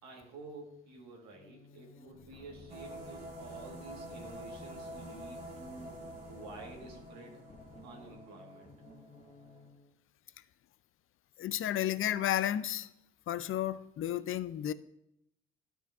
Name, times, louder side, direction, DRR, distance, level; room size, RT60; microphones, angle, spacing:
voice 1, 0.0-7.4 7.8-8.7, right 2 dB, 70° right, 1.8 m, -50 dB
sound 1, 1.3-9.9, left 2 dB, 25° left, 1.1 m, -55 dB
sound 2, 2.7-9.7, right 1 dB, 90° right, 2.0 m, -48 dB
voice 2, 11.4-12.9 13.3-14.7, left 11 dB, 45° left, 0.5 m, -32 dB
12.0 x 4.4 x 3.6 m
hypercardioid pair, 50°, 29 cm